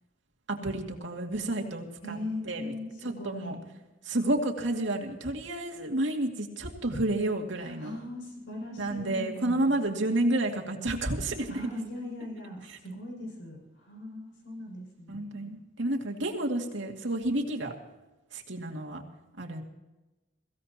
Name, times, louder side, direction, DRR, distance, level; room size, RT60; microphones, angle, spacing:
voice 1, 0.5-2.2 2.4-2.7 3.0-3.6 4.0-8.0 8.8-11.5 15.1-17.7 18.3-19.0 19.4-19.6, right 1 dB, 75° right, 1 dB, 2.3 m, -30 dB
voice 2, 2.0-3.5 7.6-9.7 11.5-15.6, left 1 dB, 75° left, -1 dB, 6.1 m, -40 dB
23.0 x 16.5 x 2.9 m, 1.1 s
head